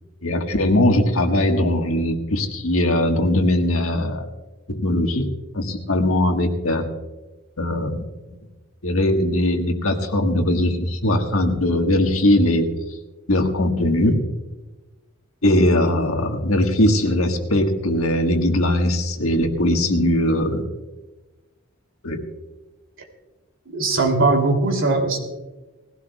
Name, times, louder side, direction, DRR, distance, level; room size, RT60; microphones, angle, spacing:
voice 1, 0.2-4.3 4.7-5.3 5.5-6.9 7.6-8.0 8.8-12.7 13.3-14.2 15.4-20.6 22.0-22.2, left 1 dB, 90° left, 4 dB, 1.6 m, -20 dB
voice 2, 23.7-25.2, right 3 dB, 65° right, 2 dB, 2.9 m, -19 dB
20.0 x 16.0 x 2.3 m, 1.2 s
head